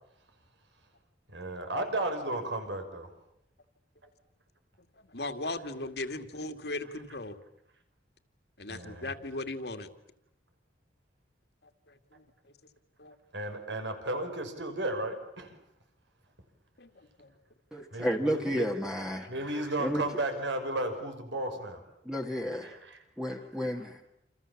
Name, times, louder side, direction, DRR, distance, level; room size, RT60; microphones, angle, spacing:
voice 1, 1.3-3.1 8.7-9.2 13.3-15.5 17.9-18.7 19.3-21.8 22.6-23.0, right 1 dB, 80° right, 7 dB, 5.8 m, -34 dB
voice 2, 5.1-7.4 8.6-9.9 12.2-12.3 13.0-13.1 16.8-17.3, left 2 dB, 65° left, 8 dB, 2.3 m, -37 dB
voice 3, 17.7-19.3 19.6-20.0 22.1-22.7 23.2-24.1, equal, 5° right, 1 dB, 1.8 m, -32 dB
28.5 x 28.5 x 7.3 m, 0.77 s
head